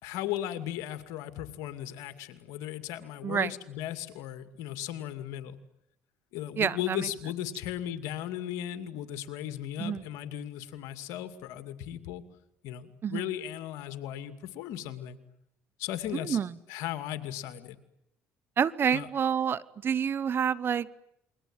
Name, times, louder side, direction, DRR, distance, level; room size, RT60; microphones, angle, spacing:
voice 1, 0.0-5.6 6.3-12.2 12.6-15.2 15.8-16.4 16.7-17.8 18.9-19.1, left 12 dB, 80° left, 10 dB, 2.4 m, -36 dB
voice 2, 6.6-7.1 9.8-10.0 13.0-13.3 16.1-16.5 18.6-20.9, right 7 dB, 45° right, 19 dB, 1.2 m, -28 dB
28.5 x 22.5 x 9.1 m, 0.80 s
supercardioid pair, 80°, 5 cm